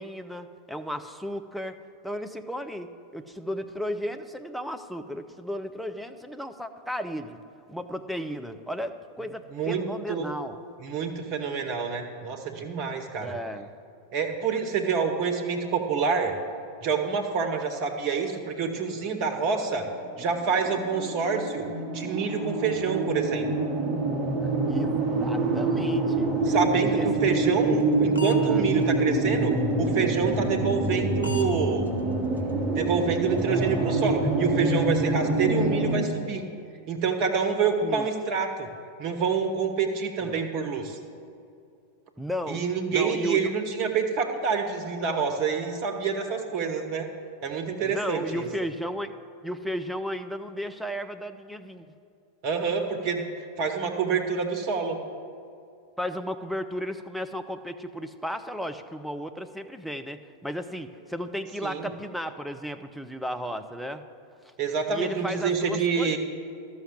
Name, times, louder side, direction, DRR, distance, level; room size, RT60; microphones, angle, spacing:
voice 1, 0.0-7.4 7.7-10.6 13.2-13.7 24.4-26.3 26.8-27.1 27.4-27.5 28.4-28.7 37.8-38.1 40.2-40.5 42.2-42.6 42.9-43.5 47.8-51.9 56.0-64.0 64.4-64.5 64.9-66.2, equal, ahead, 6 dB, 0.6 m, -34 dB
voice 2, 9.5-10.3 10.8-13.3 14.1-16.4 16.8-19.9 20.2-21.7 21.9-23.5 26.5-31.9 32.7-36.4 36.9-38.7 39.0-41.0 42.5-47.1 47.4-48.5 52.4-53.3 53.6-55.0 61.6-61.9 64.6-66.2, right 5 dB, 45° right, 5 dB, 1.4 m, -27 dB
sound 1, 19.0-36.0, right 2 dB, 20° right, 1.8 m, -26 dB
sound 2, 27.4-28.4 28.8-29.0 29.3-29.5 29.8-30.0 30.3-30.5 30.8-31.0 31.2-31.5 31.9-32.0 32.4-32.5 32.9-33.0 33.4-33.6, left 4 dB, 75° left, 1.0 m, -38 dB
12.5 x 6.4 x 7.5 m, 2.5 s
figure-of-eight pair, 90°, 0 cm